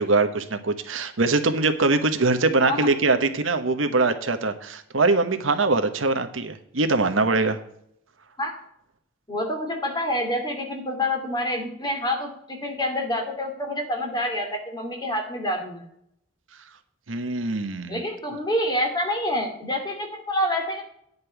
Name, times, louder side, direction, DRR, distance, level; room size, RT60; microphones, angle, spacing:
voice 1, 0.0-7.6 17.1-18.0, right 3 dB, 90° right, 8 dB, 1.1 m, -22 dB
voice 2, 9.3-15.8 17.9-20.8, left 1 dB, 20° left, 2 dB, 2.4 m, -27 dB
9.8 x 5.4 x 8.0 m, 0.72 s
head